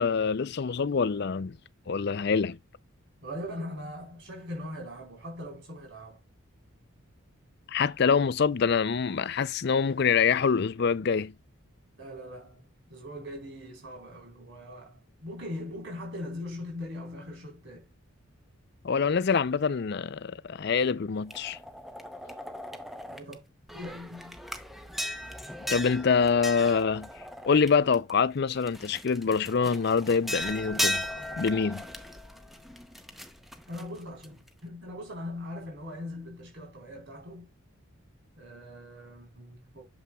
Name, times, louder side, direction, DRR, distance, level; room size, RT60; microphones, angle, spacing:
voice 1, 0.0-1.6 1.9-2.6 7.7-11.3 18.8-21.6 25.7-27.1 27.4-31.0 31.4-31.8, left 5 dB, 50° left, 0.4 m, -25 dB
voice 2, 3.2-6.2 12.0-17.9 23.1-23.4 23.7-24.4 33.7-37.5 38.4-39.9, left 1 dB, 55° right, 4.0 m, -41 dB
sound 1, 21.3-23.3 23.7-28.1 28.6-34.5, left 1 dB, ahead, 0.7 m, -37 dB
8.3 x 7.4 x 2.3 m
head